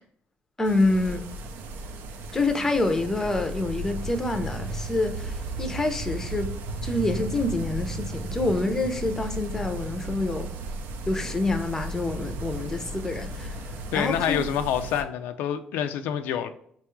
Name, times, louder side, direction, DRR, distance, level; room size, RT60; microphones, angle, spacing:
voice 1, 0.6-1.2 2.3-6.5 6.8-10.5 11.1-14.5, left 2 dB, 15° left, 0.5 m, -27 dB
sound 1, 0.6-15.0, right 2 dB, 80° right, 0.5 m, -35 dB
voice 2, 13.9-16.5, left 9 dB, 90° left, 0.3 m, -27 dB
5.4 x 2.3 x 3.0 m
cardioid pair, 135°, 3 cm